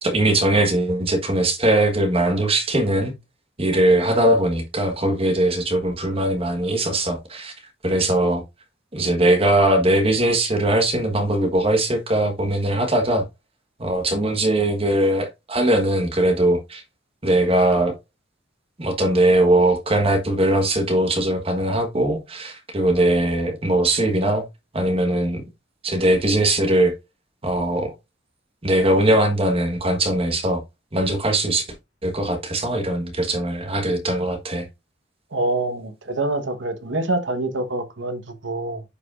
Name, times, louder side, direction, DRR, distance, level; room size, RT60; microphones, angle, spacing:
voice 1, 0.0-3.1 3.6-7.5 7.8-8.4 8.9-13.2 13.8-16.8 17.2-18.0 18.8-24.4 24.7-25.4 25.8-26.9 27.4-27.9 28.6-30.6 30.9-31.6 32.0-34.7, right 1 dB, 30° right, 1.3 m, -20 dB
voice 2, 35.3-38.8, right 2 dB, 75° right, 1.2 m, -26 dB
10.5 x 5.0 x 2.5 m
head